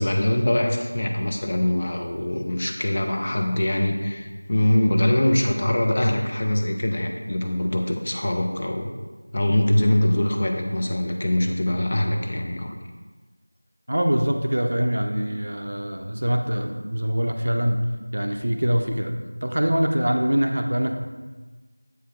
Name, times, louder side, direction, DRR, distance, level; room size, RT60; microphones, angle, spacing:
voice 1, 0.0-8.9 9.3-12.7, left 1 dB, 20° left, 2 dB, 0.5 m, -23 dB
voice 2, 13.9-17.8 18.1-19.1 19.4-21.0, equal, 45° right, 5 dB, 0.5 m, -23 dB
7.9 x 4.7 x 3.4 m, 1.3 s
figure-of-eight pair, 175°, 0 cm